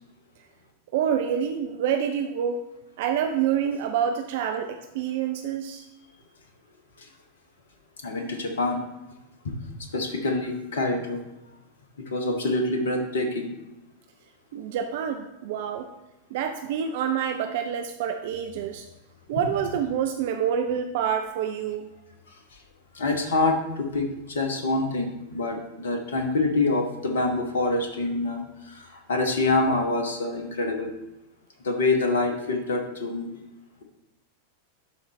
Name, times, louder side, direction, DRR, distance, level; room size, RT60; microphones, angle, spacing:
voice 1, 0.9-2.6 3.0-5.8 14.5-15.9 16.3-18.8 19.3-21.9, right 8 dB, 50° right, 6 dB, 0.4 m, -27 dB
voice 2, 8.0-8.8 9.4-9.5 9.9-11.2 12.1-13.5 19.3-19.4 22.9-30.9 31.6-33.3, left 2 dB, 65° left, 4 dB, 1.0 m, -26 dB
11.5 x 3.9 x 3.2 m, 0.98 s
figure-of-eight pair, 90°, 0 cm